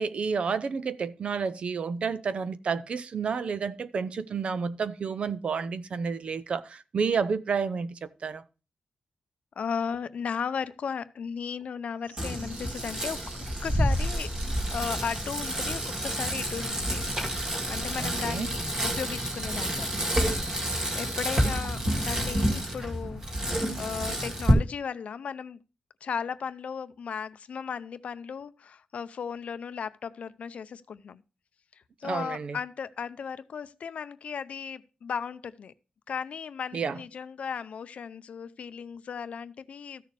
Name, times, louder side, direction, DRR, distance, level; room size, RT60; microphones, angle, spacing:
voice 1, 0.0-8.4 18.0-18.5 32.0-32.6 36.7-37.0, right 5 dB, 50° right, 0.6 m, -30 dB
voice 2, 9.6-14.3 14.7-17.0 17.7-23.2 23.5-25.6 26.0-31.2 31.7-35.7 36.1-40.0, left 6 dB, 60° left, 0.5 m, -36 dB
sound 1, 12.0-22.3, right 4 dB, 85° right, 1.6 m, -46 dB
Bicycle, 12.2-24.5, equal, 25° right, 1.7 m, -29 dB
14.0 x 6.7 x 3.3 m
wide cardioid pair, 165°, 3 cm